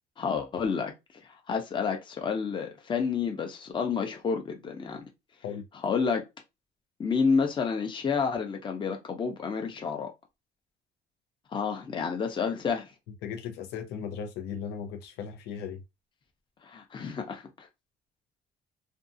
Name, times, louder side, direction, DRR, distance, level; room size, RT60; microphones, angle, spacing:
voice 1, 0.2-0.9 1.5-5.0 5.8-6.2 7.0-10.1 11.5-12.9 16.6-17.7, left 5 dB, 30° left, 0.6 m, -29 dB
voice 2, 13.2-15.8, left 7 dB, 85° left, 0.7 m, -37 dB
2.6 x 2.3 x 2.6 m
cardioid pair, 110°, 17 cm